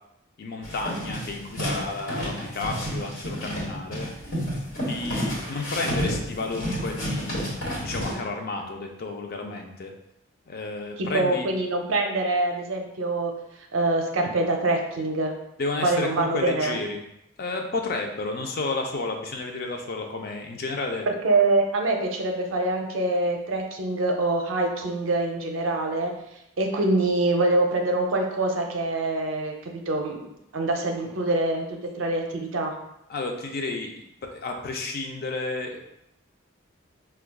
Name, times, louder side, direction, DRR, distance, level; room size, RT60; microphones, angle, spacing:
voice 1, 0.4-4.1 4.9-9.9 10.5-11.5 15.6-17.0 17.4-21.1 33.1-33.9 34.2-35.8, left 3 dB, 50° left, 3 dB, 0.4 m, -31 dB
sound 1, 0.6-8.1, equal, 65° left, 1.2 m, -30 dB
voice 2, 11.0-13.3 13.7-15.3 15.8-16.8 21.1-26.1 26.6-30.2 30.5-32.7, right 2 dB, 70° right, 3 dB, 0.5 m, -25 dB
4.6 x 2.3 x 2.2 m, 0.82 s
head